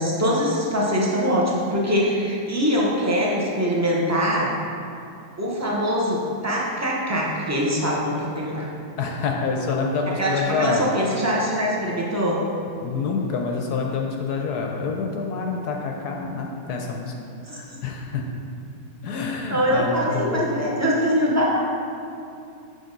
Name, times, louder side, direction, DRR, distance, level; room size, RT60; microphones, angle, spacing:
voice 1, 0.0-4.6 5.4-8.7 10.1-12.4 17.5-17.6 19.5-21.6, equal, 15° right, -4 dB, 0.5 m, -23 dB
voice 2, 9.0-11.0 12.8-17.1 17.5-18.3 19.0-20.5, left 4 dB, 70° left, 1 dB, 1.1 m, -27 dB
6.8 x 6.5 x 3.9 m, 2.6 s
omnidirectional pair, 2.0 m